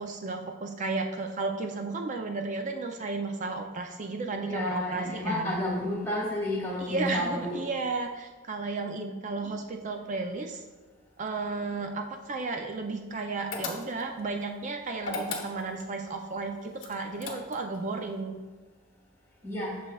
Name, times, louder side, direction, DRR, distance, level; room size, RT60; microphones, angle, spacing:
voice 1, 0.0-5.5 6.8-10.6 11.2-18.4, right 3 dB, 35° right, 4 dB, 0.4 m, -33 dB
voice 2, 4.5-7.6 19.4-19.7, left 1 dB, 10° left, -3 dB, 1.7 m, -31 dB
sound 1, 13.5-14.2 15.0-15.9 16.8-17.8, left 3 dB, 60° left, 0.8 m, -36 dB
7.9 x 6.1 x 2.3 m, 1.3 s
head